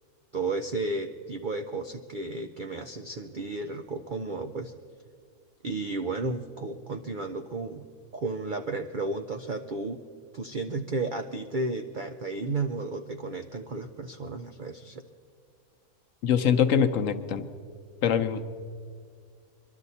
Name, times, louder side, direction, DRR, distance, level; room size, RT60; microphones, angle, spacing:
voice 1, 0.3-4.7 5.6-7.9 8.1-10.0 10.3-15.0, right 3 dB, 65° right, 6 dB, 0.5 m, -33 dB
voice 2, 16.2-17.4 18.0-18.4, left 8 dB, 65° left, 8 dB, 1.0 m, -23 dB
22.5 x 12.0 x 4.1 m, 2.1 s
omnidirectional pair, 1.5 m